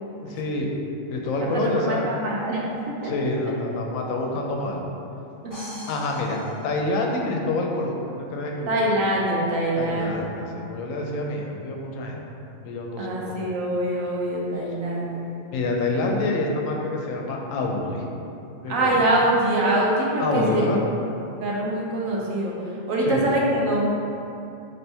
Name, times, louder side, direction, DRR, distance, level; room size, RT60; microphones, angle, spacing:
voice 1, 0.2-0.7 1.1-2.0 3.0-4.8 5.9-8.7 9.7-12.2 12.6-13.4 13.9-14.1 15.5-18.0 18.6-19.0 20.2-20.8 23.0-23.3, left 2 dB, 85° left, 0 dB, 1.0 m, -27 dB
voice 2, 1.4-3.1 5.4-5.7 8.7-10.3 13.0-15.2 18.7-20.7 21.4-23.9, right 1 dB, 80° right, -4 dB, 1.2 m, -24 dB
sound 1, 5.5-7.5, equal, 15° left, 1.3 m, -42 dB
4.3 x 3.2 x 3.3 m, 2.8 s
omnidirectional pair, 1.4 m